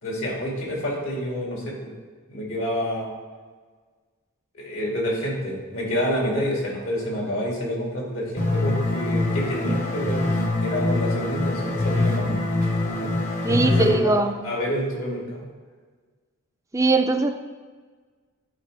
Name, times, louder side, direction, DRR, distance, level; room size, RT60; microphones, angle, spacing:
voice 1, 0.0-1.9 2.3-3.1 4.5-10.3 10.6-12.7 13.0-13.1 13.5-15.5, equal, 75° left, -3 dB, 2.4 m, -28 dB
sound 1, 8.4-13.9, left 2 dB, 35° left, 0.9 m, -24 dB
voice 2, 13.4-14.3 16.7-17.3, right 3 dB, 15° right, 6 dB, 0.4 m, -20 dB
11.5 x 4.8 x 3.4 m, 1.5 s
head